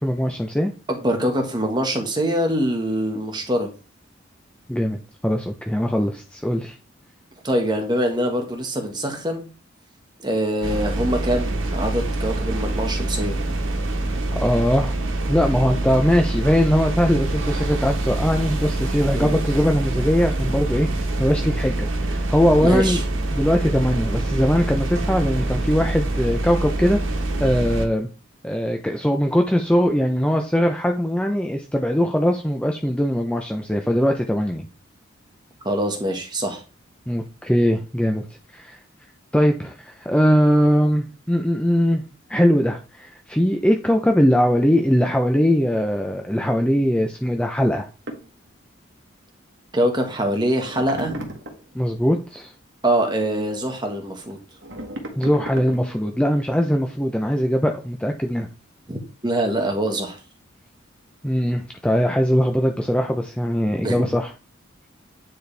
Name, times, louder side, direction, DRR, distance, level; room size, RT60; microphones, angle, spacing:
voice 1, 0.0-0.7 4.7-5.0 5.2-6.8 14.3-14.9 15.3-23.0 23.3-27.0 27.4-28.1 28.4-34.7 37.1-38.3 38.5-38.8 39.3-42.0 42.3-47.9 51.7-52.5 55.2-58.5 61.2-64.3, equal, 5° left, 3 dB, 0.6 m, -21 dB
voice 2, 0.9-3.7 7.4-9.5 10.2-13.4 19.1-19.4 22.6-23.0 35.6-36.6 49.7-51.1 52.8-54.4 58.9-60.2 63.8-64.1, right 1 dB, 20° right, 3 dB, 1.4 m, -24 dB
sound 1, 10.6-27.9, right 2 dB, 90° right, 1.4 m, -25 dB
sound 2, 48.1-48.3 49.9-50.0 50.3-51.7 54.3-56.1, right 1 dB, 65° right, 1.5 m, -35 dB
9.4 x 4.3 x 3.4 m, 0.33 s
head